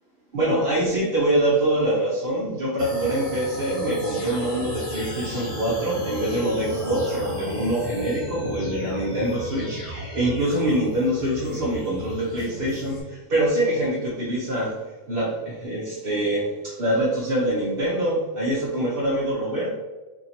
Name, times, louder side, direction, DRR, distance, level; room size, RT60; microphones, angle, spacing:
voice 1, 0.3-19.8, right 1 dB, 50° right, -5 dB, 0.8 m, -24 dB
sound 1, 2.8-13.0, left 1 dB, 30° left, 0.8 m, -35 dB
2.8 x 2.8 x 4.1 m, 1.2 s
omnidirectional pair, 1.4 m